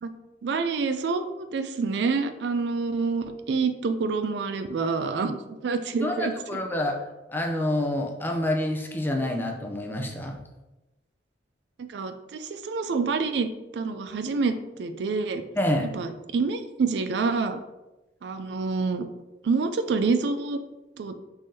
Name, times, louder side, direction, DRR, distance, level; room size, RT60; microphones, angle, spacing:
voice 1, 0.4-1.2 1.5-6.3 11.9-15.4 15.9-17.6 18.2-19.0 19.4-20.6 21.0-21.1, right 4 dB, 70° right, 9 dB, 0.4 m, -27 dB
voice 2, 6.0-7.0 7.3-10.4 15.5-15.9, left 1 dB, 10° left, 2 dB, 0.5 m, -27 dB
5.4 x 3.4 x 2.7 m, 1.0 s
head